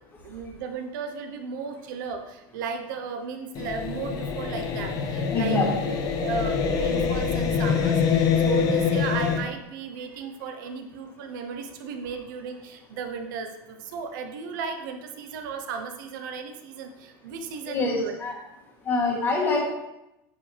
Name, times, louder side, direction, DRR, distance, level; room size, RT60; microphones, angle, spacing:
voice 1, 0.2-5.6 6.2-18.1, right 5 dB, 85° right, 6 dB, 1.0 m, -35 dB
sound 1, 3.5-9.4, left 6 dB, 35° left, 0.8 m, -25 dB
voice 2, 5.3-5.7 17.7-18.4 18.8-19.7, left 3 dB, 20° left, -1 dB, 1.6 m, -25 dB
8.5 x 6.9 x 3.4 m, 0.91 s
cardioid pair, 170°, 10 cm